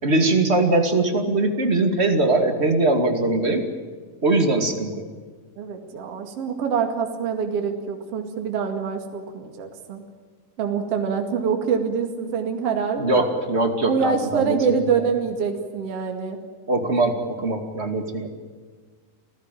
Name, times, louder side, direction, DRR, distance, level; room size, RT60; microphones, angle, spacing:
voice 1, 0.0-3.7 4.2-5.0 13.0-14.9 16.7-18.3, right 2 dB, 20° right, 4 dB, 2.0 m, -21 dB
voice 2, 5.6-10.0 10.6-13.3 13.9-16.4, right 6 dB, 45° right, 4 dB, 2.9 m, -25 dB
28.0 x 16.0 x 9.2 m, 1.5 s
omnidirectional pair, 4.0 m